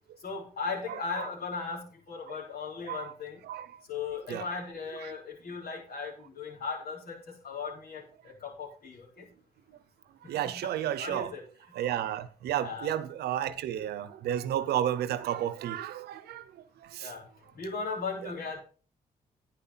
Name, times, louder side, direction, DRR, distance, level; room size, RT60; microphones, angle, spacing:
voice 1, 0.2-3.4 3.9-7.2 7.4-8.0 8.4-9.1 11.0-11.4 12.6-12.9 13.4-13.8 17.0-17.2 17.6-18.6, left 5 dB, 70° left, 4.4 m, -37 dB
voice 2, 0.9-1.3 2.9-3.0 3.5-3.7 4.3-4.5 5.0-5.1 10.3-11.3 11.8-16.4 16.9-17.1 18.2-18.3, right 11 dB, 85° right, 0.8 m, -32 dB
10.5 x 9.7 x 4.2 m
supercardioid pair, 55°, 16 cm